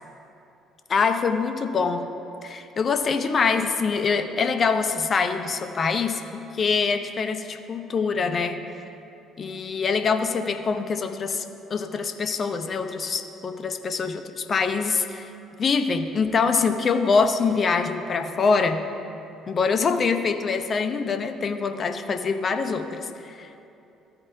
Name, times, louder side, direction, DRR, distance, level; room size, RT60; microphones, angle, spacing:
voice 1, 0.9-2.1 2.4-6.2 6.5-8.8 9.4-11.4 11.7-15.3 15.6-18.8 19.5-23.6, left 5 dB, 35° left, 7 dB, 0.6 m, -24 dB
14.0 x 4.8 x 3.5 m, 2.8 s
figure-of-eight pair, 50°, 0 cm